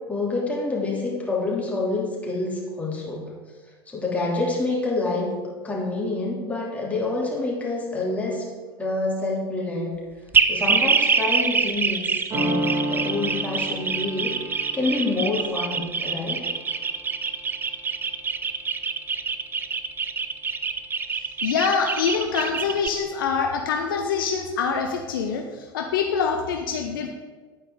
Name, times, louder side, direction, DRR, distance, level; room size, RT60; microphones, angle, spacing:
voice 1, 0.1-3.3 3.9-5.4 5.6-8.5 8.8-9.9 10.4-12.1 12.3-16.5, left 2 dB, 10° left, -4 dB, 3.0 m, -27 dB
sound 1, 10.3-22.9, right 5 dB, 15° right, 0.5 m, -25 dB
sound 2, 12.3-17.8, equal, 40° right, 2.6 m, -32 dB
voice 2, 21.4-27.1, left 6 dB, 65° left, 4 dB, 0.8 m, -25 dB
9.8 x 9.1 x 3.8 m, 1.4 s
figure-of-eight pair, 75°, 12 cm